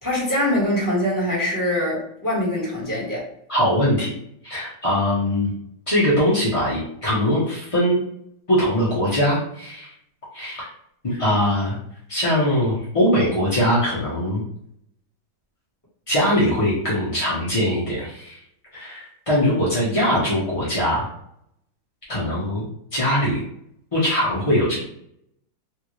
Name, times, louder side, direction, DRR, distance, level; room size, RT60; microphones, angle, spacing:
voice 1, 0.0-3.3, left 1 dB, 10° left, -6 dB, 1.1 m, -23 dB
voice 2, 3.5-4.1 4.4-5.5 5.9-8.0 8.5-9.9 10.3-10.6 11.0-11.8 12.1-14.4 16.1-18.4 18.7-21.0 22.1-23.4 23.9-24.8, equal, 45° left, -8 dB, 0.4 m, -21 dB
3.5 x 2.4 x 3.0 m, 0.71 s
omnidirectional pair, 2.1 m